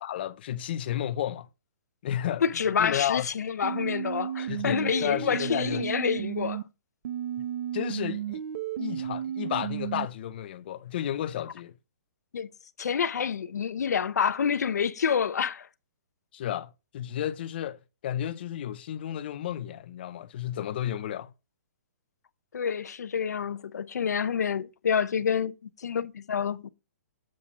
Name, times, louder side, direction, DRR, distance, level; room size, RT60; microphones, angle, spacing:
voice 1, 0.0-1.5 2.0-2.4 2.8-3.3 4.5-5.9 7.7-8.4 8.8-11.8 16.3-21.3, left 11 dB, 40° left, 0.6 m, -32 dB
voice 2, 2.4-6.6 12.3-12.5 12.8-15.7 22.5-26.7, left 7 dB, 85° left, 0.7 m, -28 dB
sound 1, 3.6-6.6 7.0-10.1, right 10 dB, 50° right, 0.9 m, -33 dB
7.6 x 5.7 x 3.7 m
hypercardioid pair, 170°, 9 cm